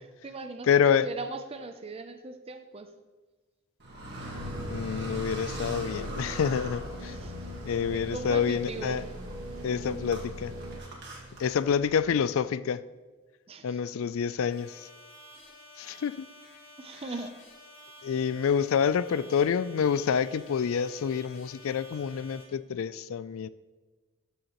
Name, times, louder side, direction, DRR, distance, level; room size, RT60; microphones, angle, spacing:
voice 1, 0.0-2.9 7.0-7.3 7.9-9.0 13.5-13.8 16.8-17.3, right 3 dB, 25° right, 0.5 m, -39 dB
voice 2, 0.7-1.1 4.7-7.2 7.6-9.0 9.6-10.5 11.4-12.8 13.6-14.9 15.8-16.3 18.0-23.5, left 7 dB, 65° left, 0.3 m, -27 dB
Car, 3.8-12.1, right 1 dB, 50° right, 1.7 m, -41 dB
sound 1, 4.3-10.8, equal, 70° right, 1.2 m, -41 dB
sound 2, 14.5-22.4, left 1 dB, 90° left, 3.0 m, -51 dB
12.5 x 6.5 x 3.0 m
head